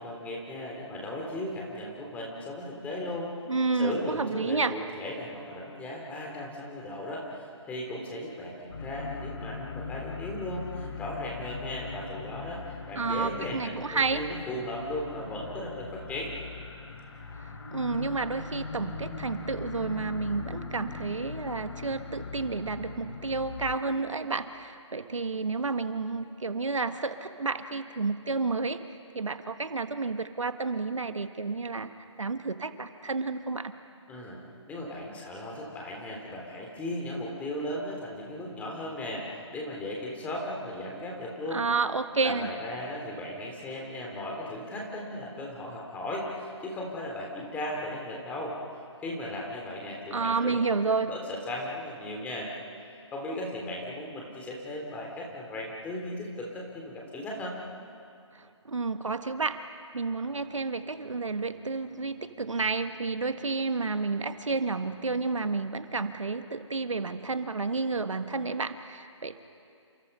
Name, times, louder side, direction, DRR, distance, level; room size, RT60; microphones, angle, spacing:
voice 1, 0.0-3.3 3.7-12.6 12.9-16.3 34.1-34.4 34.7-41.6 42.2-48.6 49.0-50.6 50.9-52.5 53.1-57.5, left 1 dB, 10° left, -2 dB, 3.5 m, -36 dB
voice 2, 3.5-4.7 12.9-14.2 17.4-28.8 29.1-31.9 32.2-33.7 41.5-42.5 50.1-51.1 58.3-59.7 59.9-69.4, right 4 dB, 80° right, 9 dB, 1.5 m, -30 dB
sound 1, 8.7-23.8, left 4 dB, 55° left, 4.0 m, -40 dB
29.5 x 28.0 x 5.6 m, 2.5 s
figure-of-eight pair, 150°, 16 cm